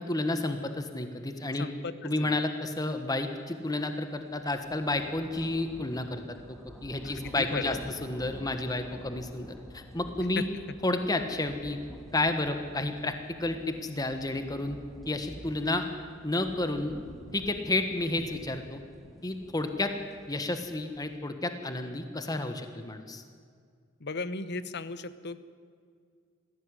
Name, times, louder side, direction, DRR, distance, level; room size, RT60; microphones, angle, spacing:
voice 1, 0.0-1.7 2.0-10.4 10.8-11.8 12.1-13.1 13.4-14.8 15.1-15.8 16.2-16.9 17.3-18.8 19.2-19.9 20.3-23.2, left 2 dB, 20° left, 7 dB, 1.4 m, -31 dB
voice 2, 1.6-2.4 7.0-7.8 10.4-10.5 24.0-25.4, left 3 dB, 55° left, 13 dB, 1.0 m, -36 dB
sound 1, 3.9-21.2, equal, ahead, 2.7 m, -49 dB
20.5 x 16.0 x 10.0 m, 2.1 s
head